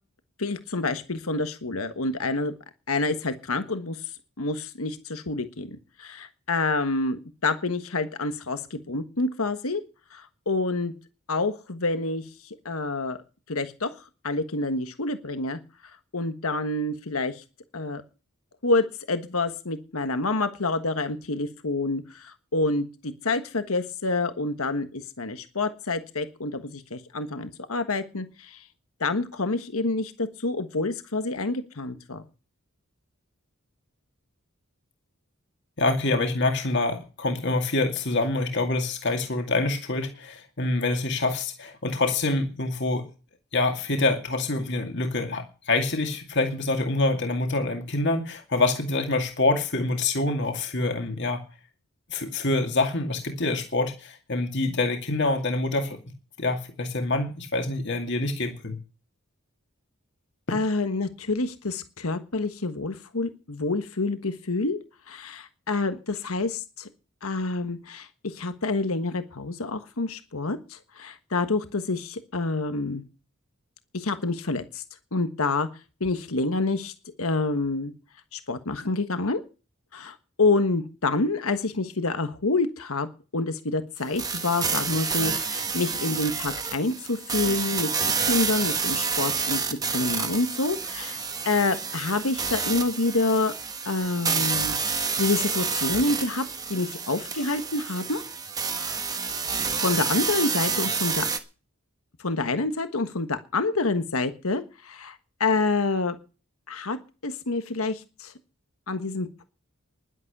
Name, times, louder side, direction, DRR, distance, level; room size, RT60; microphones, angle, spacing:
voice 1, 0.4-2.5 2.9-4.0 4.4-9.8 10.1-10.9 11.3-13.2 13.5-15.6 16.1-17.4 17.7-18.0 18.6-28.6 29.0-32.2 60.5-64.8 65.1-66.9 67.2-73.0 73.9-74.8 75.1-75.7 76.0-76.9 77.2-77.9 78.3-79.4 79.9-83.1 83.3-93.5 93.8-94.8 95.2-96.4 96.7-98.2 98.7-99.0 99.8-101.3 102.2-106.1 106.7-107.0 107.2-108.3 108.9-109.4, left 3 dB, 80° left, 9 dB, 1.4 m, -27 dB
voice 2, 35.8-43.1 43.5-51.4 52.1-56.0 56.4-58.8 60.5-60.6, left 2 dB, 55° left, 4 dB, 2.3 m, -26 dB
sound 1, 84.2-101.4, right 5 dB, 15° right, 1.4 m, -29 dB
11.5 x 10.5 x 6.7 m, 0.33 s
head